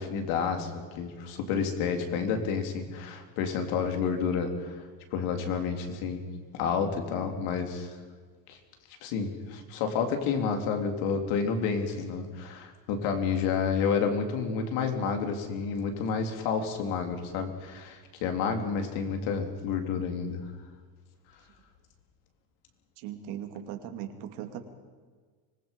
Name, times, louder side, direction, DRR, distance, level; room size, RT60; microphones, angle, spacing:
voice 1, 0.0-4.8 5.1-8.0 8.5-8.6 9.0-20.5, left 6 dB, 75° left, 5 dB, 3.4 m, -30 dB
voice 2, 23.0-24.6, right 10 dB, 80° right, 5 dB, 2.6 m, -38 dB
25.0 x 20.0 x 5.3 m, 1.5 s
cardioid pair, 155°, 49 cm